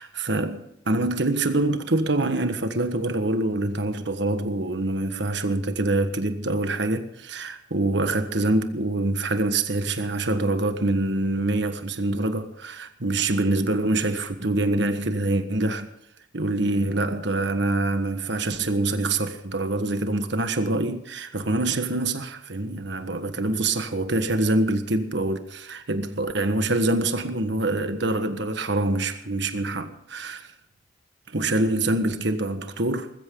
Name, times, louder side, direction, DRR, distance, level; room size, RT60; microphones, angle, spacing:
voice 1, 0.0-15.9 16.3-30.4 31.3-33.1, right 2 dB, 65° right, 1.5 m, -25 dB
20.5 x 15.5 x 3.9 m
head